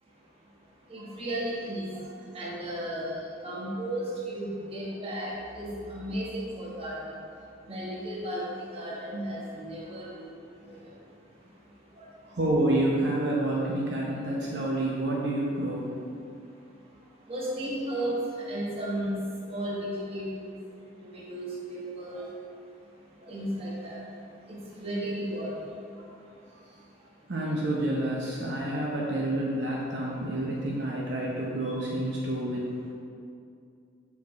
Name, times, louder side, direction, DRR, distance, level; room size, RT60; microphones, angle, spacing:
voice 1, 0.0-12.4 16.2-27.3, right 1 dB, 30° right, -5 dB, 1.4 m, -36 dB
voice 2, 12.3-15.9 27.3-32.6, right 1 dB, 65° right, -4 dB, 0.8 m, -28 dB
7.0 x 4.9 x 4.1 m, 2.5 s
head